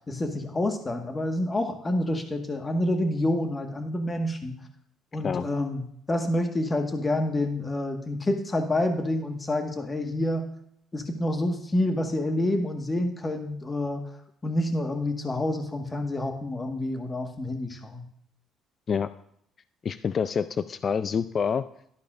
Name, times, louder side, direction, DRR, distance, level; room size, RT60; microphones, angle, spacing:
voice 1, 0.1-4.5 5.1-10.5 10.9-14.1 14.4-18.0, left 1 dB, 25° left, 4 dB, 1.6 m, -28 dB
voice 2, 19.8-21.6, left 6 dB, 45° left, 14 dB, 0.4 m, -27 dB
13.0 x 11.5 x 2.6 m, 0.71 s
hypercardioid pair, 55°, 0 cm